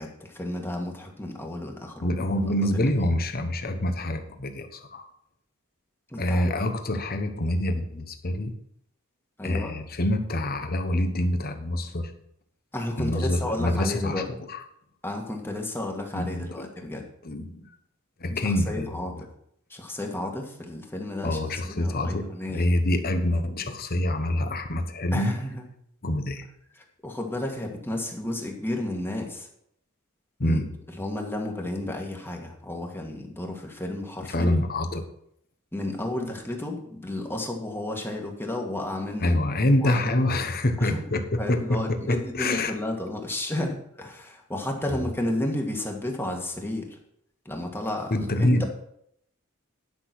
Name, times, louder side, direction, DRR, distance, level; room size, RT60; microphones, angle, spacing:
voice 1, 0.0-2.1 6.1-6.4 9.4-9.8 12.7-14.3 15.0-17.0 18.4-19.1 19.7-22.7 25.1-25.6 26.8-29.5 30.4-30.6 31.0-34.6 35.7-39.4 39.8-40.3 40.8-41.0 41.4-47.0 47.5-48.6, left 1 dB, 10° left, 2 dB, 1.7 m, -32 dB
voice 2, 2.0-5.1 6.2-8.5 9.4-12.1 13.0-14.2 14.5-14.6 16.1-16.7 17.2-17.7 18.2-19.2 21.2-25.3 26.0-26.4 30.4-30.7 34.3-35.0 39.2-42.7 44.9-45.0 48.1-48.6, left 1 dB, 45° left, 7 dB, 1.2 m, -26 dB
11.0 x 6.1 x 6.0 m, 0.71 s
head